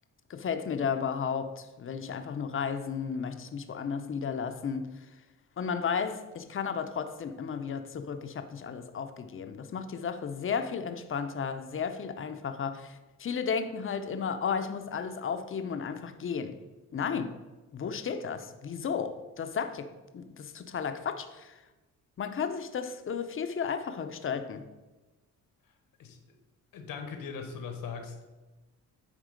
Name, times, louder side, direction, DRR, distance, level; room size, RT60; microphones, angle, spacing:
voice 1, 0.3-4.9 5.6-16.6 16.9-17.4 17.7-21.5 22.2-24.7, left 6 dB, 40° left, 0.7 m, -33 dB
voice 2, 26.7-28.2, left 5 dB, 80° left, 1.2 m, -39 dB
9.0 x 3.5 x 5.1 m
cardioid pair, 90°, 33 cm